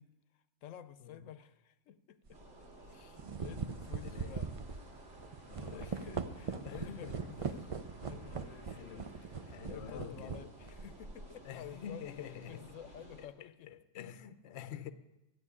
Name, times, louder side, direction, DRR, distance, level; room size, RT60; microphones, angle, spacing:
voice 1, 0.0-2.4 2.8-4.5 5.6-7.7 8.0-13.7, left 10 dB, 85° left, 1.0 m, -52 dB
sound 1, 2.3-2.5 3.0-11.4, right 5 dB, 45° right, 0.4 m, -41 dB
sound 2, 2.3-13.3, right 1 dB, 65° right, 2.7 m, -55 dB
voice 2, 4.0-4.3 5.5-5.9 6.6-7.2 8.7-9.1 9.5-10.5 11.4-12.6 13.2-14.9, left 9 dB, 65° left, 0.9 m, -47 dB
12.5 x 7.9 x 9.7 m
omnidirectional pair, 1.3 m